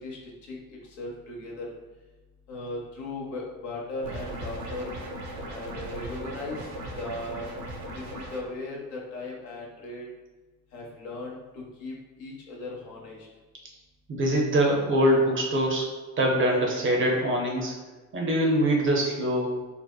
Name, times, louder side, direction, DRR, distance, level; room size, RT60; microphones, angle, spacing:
voice 1, 0.0-1.7 2.5-4.9 5.5-6.7 7.0-7.5 7.9-10.1 10.7-13.3, left 2 dB, 65° left, -2 dB, 0.7 m, -37 dB
sound 1, 4.0-8.4, right 1 dB, 80° right, 0.6 m, -37 dB
voice 2, 14.1-15.9 16.2-17.7 18.1-19.5, right 1 dB, 30° right, -1 dB, 0.5 m, -23 dB
2.7 x 2.0 x 2.2 m, 1.2 s
figure-of-eight pair, 50°, 45 cm